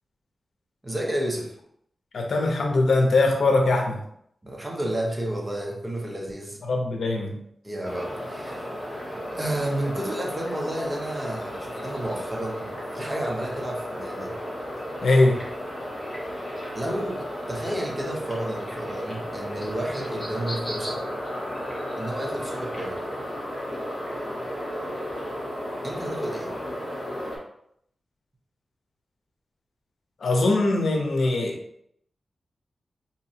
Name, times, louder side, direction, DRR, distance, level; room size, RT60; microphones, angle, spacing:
voice 1, 0.8-1.6 4.4-6.6 7.6-8.7 9.0-14.4 16.7-21.1 22.0-23.0 25.8-26.6, right 1 dB, 20° right, -1 dB, 0.7 m, -31 dB
voice 2, 2.1-4.0 6.7-7.4 15.0-15.4 30.2-31.6, left 2 dB, 80° left, 2 dB, 0.6 m, -21 dB
sound 1, 7.8-27.4, equal, 25° left, 1.4 m, -34 dB
3.9 x 3.0 x 2.7 m, 0.71 s
wide cardioid pair, 125°, 0 cm